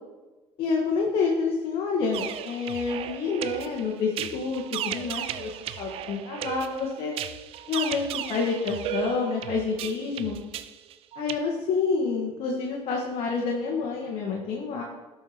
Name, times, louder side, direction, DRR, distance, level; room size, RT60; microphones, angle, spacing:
voice 1, 0.6-7.1 7.7-10.4 11.2-14.8, left 4 dB, 55° left, -1 dB, 1.4 m, -28 dB
sound 1, 2.1-11.4, right 11 dB, 55° right, 0.5 m, -35 dB
12.5 x 4.7 x 4.9 m, 1.2 s
cardioid pair, 130°, 11 cm